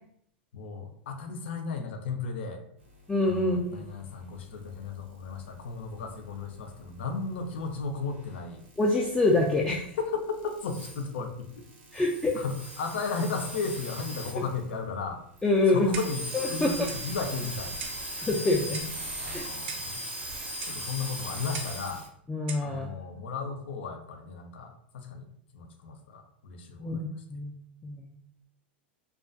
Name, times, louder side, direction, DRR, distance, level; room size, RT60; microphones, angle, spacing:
voice 1, 0.5-2.6 3.2-8.6 10.0-10.3 10.6-11.6 12.3-15.2 15.7-17.8 19.2-20.0 20.6-22.0 22.6-25.3 25.5-27.0, left 4 dB, 75° left, 4 dB, 0.5 m, -35 dB
voice 2, 3.1-3.8 8.8-9.9 11.9-12.4 14.4-14.5 15.4-15.9 16.3-16.7 18.2-18.8 19.3-19.4 22.3-22.9 26.8-27.0 27.3-27.5 27.8-28.1, left 2 dB, 10° left, -3 dB, 0.3 m, -26 dB
sound 1, 4.5-14.7 15.1-15.2 15.4-22.1, right 1 dB, 85° right, 0.8 m, -39 dB
Clock, 15.9-16.3 16.9-17.1 17.8-18.1 18.7-19.0 19.7-19.9 20.6-20.8 21.5-21.8 22.5-22.7, right 5 dB, 65° right, 0.5 m, -40 dB
2.3 x 2.3 x 2.5 m, 0.67 s
hypercardioid pair, 110°, 6 cm